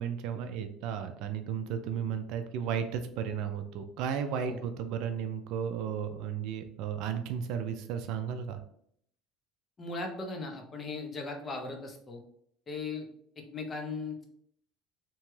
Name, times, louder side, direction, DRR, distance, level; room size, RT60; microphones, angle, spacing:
voice 1, 0.0-8.6, right 8 dB, 65° right, 7 dB, 0.3 m, -34 dB
voice 2, 9.8-12.2 12.7-13.1 13.4-14.3, left 3 dB, 25° left, 2 dB, 0.6 m, -38 dB
2.9 x 2.3 x 3.0 m, 0.68 s
cardioid pair, 130°, 0 cm